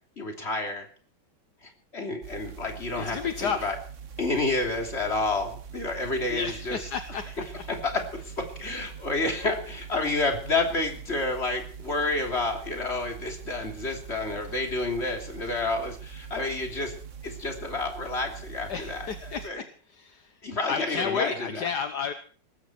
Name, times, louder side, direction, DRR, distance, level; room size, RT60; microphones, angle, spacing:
voice 1, 0.2-0.9 1.6-3.8 4.2-6.9 7.7-8.1 8.6-16.9 17.2-19.6 20.4-21.6, left 2 dB, 35° left, 3 dB, 3.4 m, -29 dB
sound 1, 2.2-19.5, right 7 dB, 45° right, 1.4 m, -43 dB
voice 2, 3.0-3.7 6.3-7.2 18.7-19.4 19.9-20.3 20.7-22.1, left 6 dB, 65° left, 9 dB, 1.6 m, -31 dB
19.0 x 15.0 x 4.5 m, 0.43 s
omnidirectional pair, 1.9 m